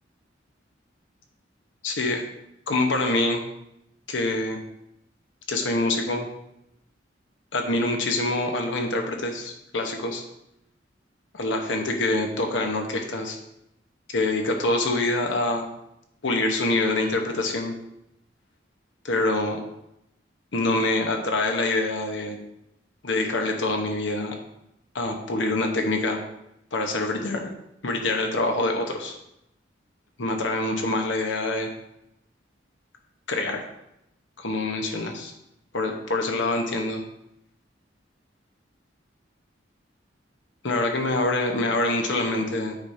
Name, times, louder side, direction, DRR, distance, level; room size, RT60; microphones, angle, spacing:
voice 1, 1.8-2.2 2.7-3.4 4.1-4.6 5.5-6.3 7.5-10.2 11.3-13.4 14.1-15.7 16.2-17.7 19.0-19.6 20.5-22.4 23.0-24.4 24.9-26.2 26.7-27.5 27.8-29.1 30.2-31.7 33.3-33.6 34.4-35.3 35.7-37.0 40.6-42.8, left 2 dB, 80° left, 2 dB, 1.0 m, -25 dB
8.8 x 5.0 x 2.7 m, 0.84 s
head